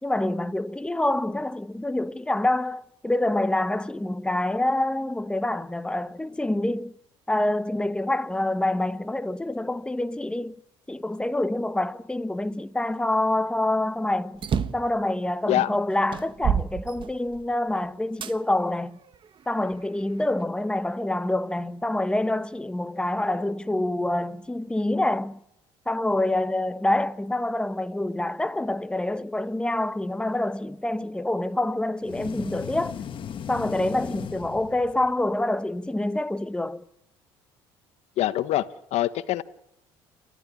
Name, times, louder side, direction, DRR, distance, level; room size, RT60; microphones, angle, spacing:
voice 1, 0.0-6.9 7.3-10.5 10.9-14.4 14.7-19.0 19.5-25.4 25.9-33.0 33.5-36.8, left 1 dB, 10° left, 1.2 m, -26 dB
sound 1, 14.3-14.9 15.6-15.7 16.1-17.5 18.2-18.3 19.1-20.1, right 7 dB, 45° right, 1.3 m, -29 dB
sound 2, 32.0-35.2, left 8 dB, 45° left, 1.6 m, -37 dB
voice 2, 38.2-39.4, left 13 dB, 65° left, 1.2 m, -25 dB
29.0 x 13.0 x 9.8 m
supercardioid pair, 90°, 12 cm